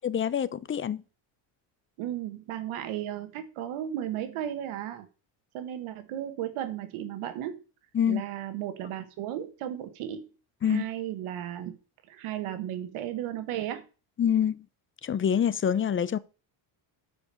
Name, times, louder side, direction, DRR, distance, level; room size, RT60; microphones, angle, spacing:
voice 1, 0.0-1.0 7.9-8.2 10.6-10.9 14.2-14.7 15.0-16.2, left 8 dB, 25° left, 0.5 m, -26 dB
voice 2, 2.0-5.1 5.5-7.6 8.1-10.3 10.6-11.8 12.1-13.8, right 11 dB, 75° right, 1.4 m, -35 dB
8.0 x 5.2 x 6.8 m
cardioid pair, 105°, 50 cm